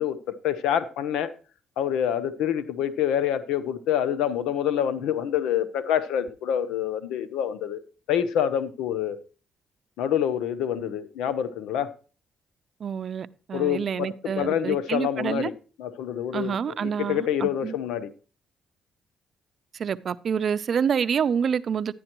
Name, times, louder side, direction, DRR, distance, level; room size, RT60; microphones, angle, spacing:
voice 1, 0.0-1.3 1.8-7.8 8.1-9.2 10.0-11.9 13.5-14.1 14.4-15.5 15.8-16.5 16.8-18.1, left 9 dB, 90° left, 0.8 m, -26 dB
voice 2, 12.8-15.5 16.3-17.7 19.7-21.9, right 7 dB, 55° right, 0.6 m, -27 dB
11.0 x 9.8 x 3.0 m
cardioid pair, 90°, 0 cm